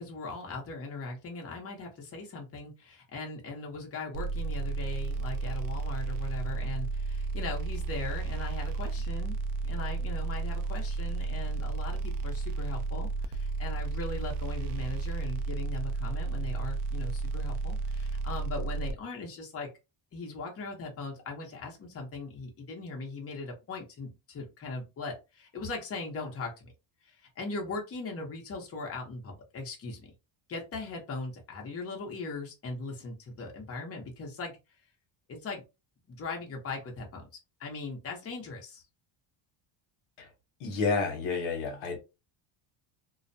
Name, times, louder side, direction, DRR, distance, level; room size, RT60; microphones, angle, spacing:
voice 1, 0.0-9.4 9.6-19.7 20.1-26.5 27.0-30.1 30.5-34.6 35.3-35.6 36.1-37.2 37.6-38.8, left 3 dB, 30° left, 0.8 m, -39 dB
sound 1, 4.1-18.9, right 4 dB, 60° right, 0.5 m, -32 dB
voice 2, 40.6-42.0, left 4 dB, 80° left, 1.0 m, -30 dB
2.4 x 2.1 x 2.6 m
cardioid pair, 120°, 48 cm